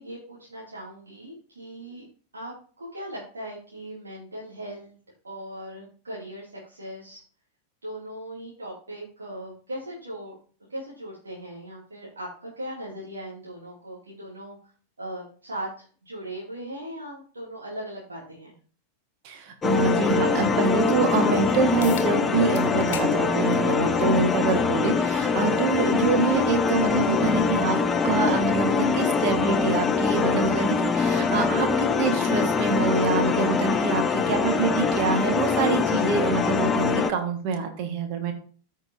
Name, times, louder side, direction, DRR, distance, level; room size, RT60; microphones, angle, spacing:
voice 1, 0.0-2.0 2.3-5.0 5.2-7.2 7.8-10.3 10.7-14.6 15.0-18.5, right 1 dB, 75° right, -6 dB, 2.6 m, -38 dB
voice 2, 19.2-27.8 28.0-38.3, right 4 dB, 45° right, 6 dB, 1.7 m, -25 dB
sound 1, 19.6-37.1, left 5 dB, 20° left, 0.6 m, -23 dB
open-can (clean), 21.8-22.1 22.5-23.1 23.5-23.7 24.7-24.8 29.8-29.9, left 10 dB, 55° left, 1.0 m, -37 dB
14.0 x 5.5 x 2.8 m, 0.40 s
figure-of-eight pair, 90°, 0 cm